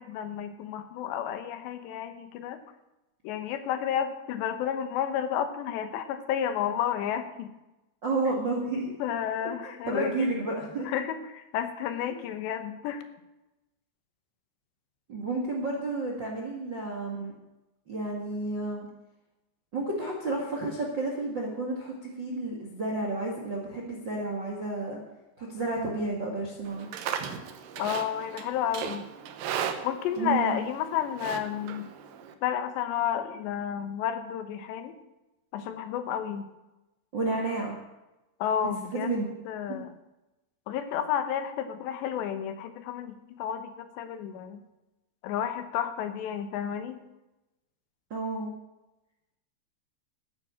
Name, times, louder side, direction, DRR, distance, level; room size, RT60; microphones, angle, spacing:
voice 1, 0.0-2.6 3.2-7.5 9.0-10.5 10.9-13.0 27.8-29.1 29.8-31.9 32.4-34.9 35.5-36.5 38.4-39.9 40.7-44.6 45.2-47.0, left 9 dB, 80° left, 9 dB, 3.2 m, -31 dB
voice 2, 8.0-8.9 9.6-10.9 15.1-17.3 17.9-18.9 19.7-25.0 25.4-26.9 30.2-30.6 37.1-37.7 38.9-39.3 39.7-39.8 48.1-48.5, right 2 dB, 50° right, 0 dB, 1.3 m, -31 dB
Livestock farm animals working animals, 26.7-32.3, right 8 dB, 70° right, 2.2 m, -37 dB
13.0 x 9.9 x 7.2 m, 1.0 s
omnidirectional pair, 5.1 m